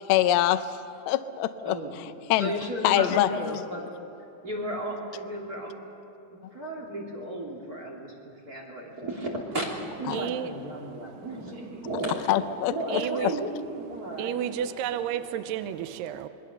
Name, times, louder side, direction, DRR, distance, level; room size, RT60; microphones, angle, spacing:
voice 1, 0.1-0.6 1.1-1.8 2.3-2.5 2.8-3.6 10.1-10.2 12.3-13.3, left 13 dB, 80° left, 10 dB, 2.3 m, -24 dB
voice 2, 1.6-2.0 2.4-3.8 4.4-5.7 6.5-14.7, right 1 dB, 25° right, -1 dB, 3.1 m, -34 dB
voice 3, 10.1-11.2 12.9-13.4 14.0-16.3, right 10 dB, 80° right, 9 dB, 2.6 m, -32 dB
28.0 x 20.5 x 6.7 m, 2.9 s
omnidirectional pair, 5.1 m